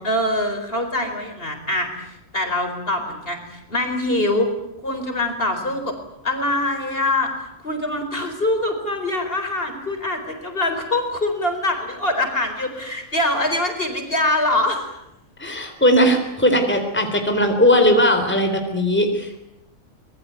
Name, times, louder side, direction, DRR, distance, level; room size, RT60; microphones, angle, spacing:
voice 1, 0.0-4.5 4.8-6.0 6.2-14.9, left 1 dB, 45° left, 6 dB, 4.8 m, -24 dB
voice 2, 15.4-19.4, equal, 10° left, 5 dB, 3.9 m, -18 dB
25.0 x 22.0 x 9.5 m, 0.86 s
omnidirectional pair, 1.4 m